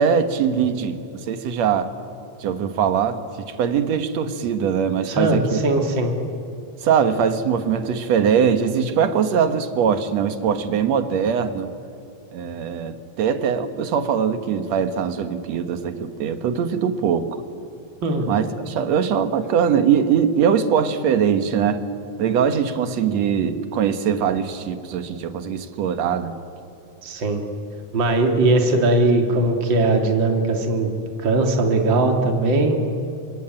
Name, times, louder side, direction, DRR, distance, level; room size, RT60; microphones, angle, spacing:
voice 1, 0.0-1.9 2.4-3.2 3.5-5.6 6.8-11.7 12.3-17.4 18.3-21.8 22.2-26.4, right 7 dB, 65° right, 9 dB, 2.5 m, -21 dB
voice 2, 5.1-6.1 18.0-18.3 27.0-27.4 27.9-30.9 31.2-32.8, right 2 dB, 40° right, 3 dB, 3.1 m, -19 dB
26.0 x 25.0 x 9.0 m, 2.7 s
omnidirectional pair, 3.4 m